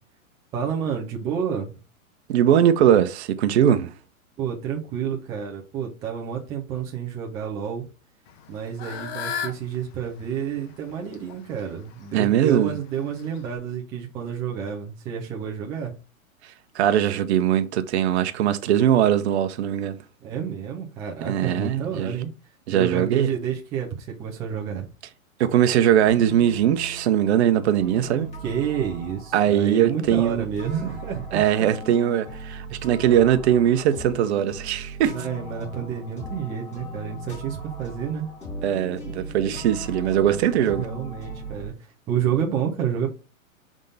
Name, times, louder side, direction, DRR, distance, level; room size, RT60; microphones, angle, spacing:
voice 1, 0.5-1.7 4.4-7.9 8.5-15.9 20.2-22.3 22.7-24.9 28.4-31.7 35.1-38.3 40.3-41.7 42.1-43.1, right 8 dB, 10° right, 0.4 m, -29 dB
voice 2, 2.3-3.9 12.1-12.7 16.7-20.0 21.3-22.1 22.7-23.3 25.4-28.3 29.3-30.4 31.3-35.1 38.6-40.8, right 10 dB, 50° right, 0.8 m, -20 dB
Fowl / Bird, 8.3-13.6, left 8 dB, 45° left, 1.5 m, -38 dB
sound 1, 26.0-41.7, right 1 dB, 15° left, 3.7 m, -38 dB
6.6 x 3.7 x 4.0 m
hypercardioid pair, 135°, 42 cm